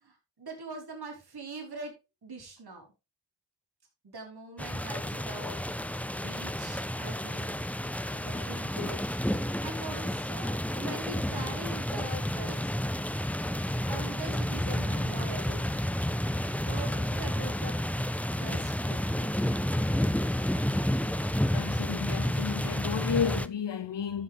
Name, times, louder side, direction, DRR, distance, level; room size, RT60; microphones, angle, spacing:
voice 1, 0.0-1.9 2.2-2.9 4.0-5.6 6.1-7.6 8.1-9.0 9.3-12.7 13.8-15.6 16.7-17.8 18.3-19.6, right 2 dB, 55° right, 4.5 m, -42 dB
sound 1, 4.6-23.5, left 1 dB, 5° left, 0.8 m, -30 dB
voice 2, 21.5-24.2, left 7 dB, 65° left, 1.9 m, -32 dB
11.0 x 7.3 x 3.5 m
supercardioid pair, 40°, 46 cm